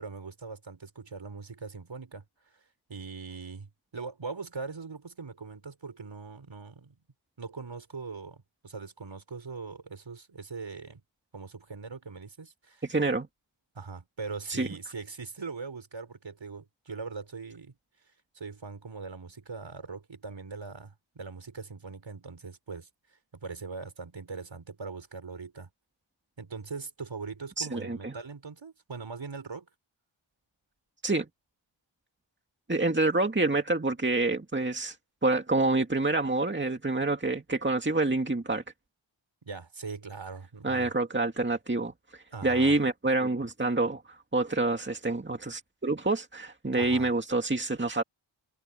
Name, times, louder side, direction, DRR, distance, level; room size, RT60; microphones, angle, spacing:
voice 1, 0.0-2.2 2.9-7.0 7.4-11.0 11.3-12.8 13.7-17.7 18.3-22.9 23.3-25.7 26.4-29.7 39.4-40.9 42.3-42.8 46.7-47.1, right 4 dB, 65° right, 5.0 m, -41 dB
voice 2, 12.9-13.3 14.5-14.7 27.6-28.1 31.0-31.3 32.7-35.0 35.2-38.6 40.6-41.9 42.4-48.0, right 2 dB, 25° right, 2.2 m, -27 dB
wide cardioid pair, 95°, 48 cm